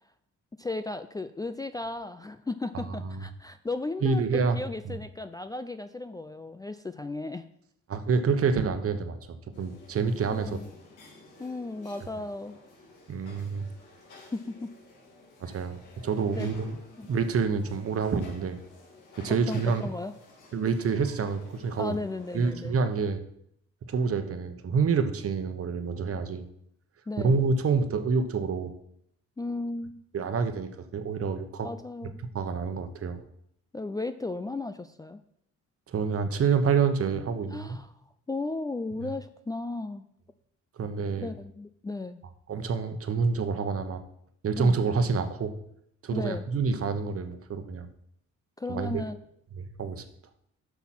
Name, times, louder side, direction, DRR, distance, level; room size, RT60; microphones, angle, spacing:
voice 1, 0.6-7.5 10.3-10.7 11.4-12.6 14.2-14.7 15.4-15.6 16.4-16.5 17.0-17.1 19.3-20.1 21.8-22.7 27.1-27.4 29.4-30.0 31.6-32.2 33.7-35.2 37.5-37.9 38.3-40.1 41.2-42.2 44.6-44.8 46.1-46.4 48.6-49.2, left 2 dB, 15° left, 11 dB, 0.4 m, -35 dB
voice 2, 4.0-4.6 4.9-5.0 7.9-10.6 13.1-13.7 15.4-16.8 17.0-18.6 19.2-19.9 20.5-22.0 22.3-23.2 23.9-26.4 27.2-28.7 30.1-31.7 32.3-33.2 35.9-37.8 40.8-41.3 42.5-44.0 44.4-45.5 46.0-47.9 48.7-49.0 49.6-50.0, right 5 dB, 50° right, 9 dB, 1.1 m, -27 dB
sound 1, 9.5-22.5, left 2 dB, 85° left, 2.5 m, -53 dB
8.3 x 6.0 x 5.9 m, 0.73 s
cardioid pair, 90°, 30 cm